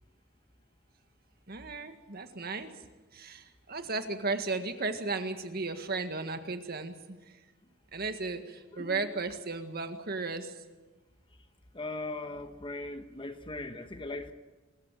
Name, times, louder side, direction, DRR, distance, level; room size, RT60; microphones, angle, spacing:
voice 1, 1.5-2.9 3.1-7.4 7.9-10.6, right 3 dB, 50° right, 7 dB, 1.8 m, -35 dB
voice 2, 8.7-9.1 11.7-14.3, left 2 dB, 25° left, 8 dB, 1.2 m, -39 dB
25.5 x 15.0 x 9.1 m, 1.2 s
head